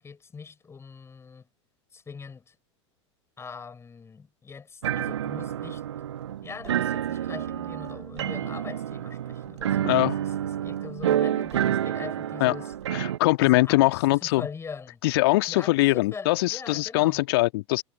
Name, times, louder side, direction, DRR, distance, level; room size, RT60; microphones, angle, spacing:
voice 1, 0.0-1.5 1.9-2.6 3.4-5.8 6.4-12.7 13.4-15.0 15.5-17.2, left 5 dB, 15° left, 7.0 m, -42 dB
sound 1, 4.8-13.2, right 11 dB, 65° right, 1.7 m, -29 dB
voice 2, 9.8-10.2 12.4-12.5 12.9-14.4 15.0-17.8, left 20 dB, 50° left, 2.1 m, -22 dB
figure-of-eight pair, 85°, 16 cm